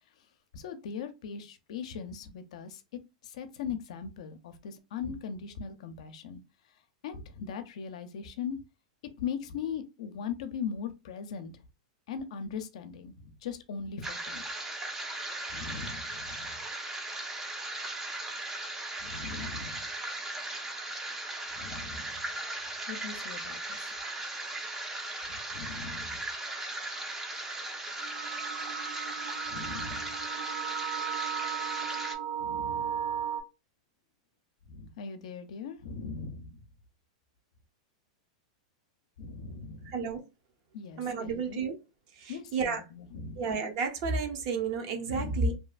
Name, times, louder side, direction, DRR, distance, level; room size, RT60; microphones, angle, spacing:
voice 1, 0.5-2.8 3.2-6.4 7.0-8.6 9.2-11.5 12.1-14.4 15.5-16.6 19.0-19.8 21.5-22.3 22.9-23.9 25.3-26.2 29.5-30.2 32.4-33.1 34.7-36.6 39.2-39.9 40.7-41.6 42.3-43.4 45.1-45.5, left 6 dB, 70° left, 0.5 m, -39 dB
sound 1, 14.0-32.1, right 2 dB, 10° right, 0.5 m, -37 dB
sound 2, 28.0-33.4, right 8 dB, 80° right, 1.5 m, -35 dB
voice 2, 39.8-40.2 41.0-41.8 42.1-42.8 43.4-45.5, right 4 dB, 50° right, 0.7 m, -31 dB
2.7 x 2.2 x 2.4 m
supercardioid pair, 145°, 4 cm